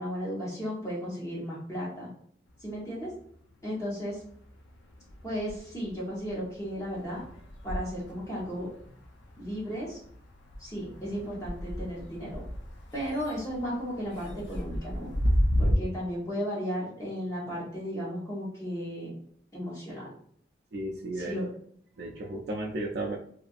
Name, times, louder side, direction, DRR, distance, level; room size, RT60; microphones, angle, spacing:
voice 1, 0.0-2.1 2.6-3.1 3.6-4.2 5.2-7.2 7.6-8.7 9.4-10.0 10.6-12.4 12.9-15.1 15.6-19.1 19.5-20.1 21.3-21.4, equal, 20° left, -6 dB, 0.9 m, -34 dB
sound 1, 2.5-3.7 4.0-15.7, equal, 90° left, 0.5 m, -34 dB
voice 2, 20.7-21.4 22.0-23.2, right 1 dB, 65° right, -1 dB, 0.3 m, -34 dB
2.7 x 2.4 x 2.4 m, 0.62 s
head